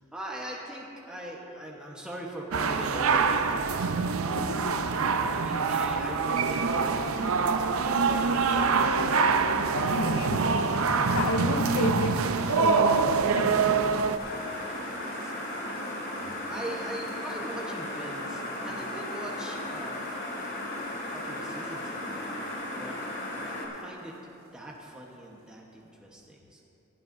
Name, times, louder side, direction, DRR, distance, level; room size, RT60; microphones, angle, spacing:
voice 1, 0.0-4.4 4.8-7.8 14.9-15.9 16.5-20.2 21.1-23.0 23.4-24.2 24.5-26.6, right 1 dB, 5° right, -3 dB, 1.0 m, -41 dB
sound 1, 2.5-14.2, right 5 dB, 80° right, 0.6 m, -25 dB
voice 2, 4.4-4.9 7.9-10.5 11.1-13.6, left 2 dB, 75° left, 5 dB, 0.5 m, -32 dB
sound 2, 9.3-25.1 25.4-25.5 25.8-25.9, right 2 dB, 50° right, 2.3 m, -49 dB
sound 3, 14.2-23.7, left 1 dB, 55° left, 2.2 m, -36 dB
19.0 x 12.0 x 2.6 m, 2.7 s
head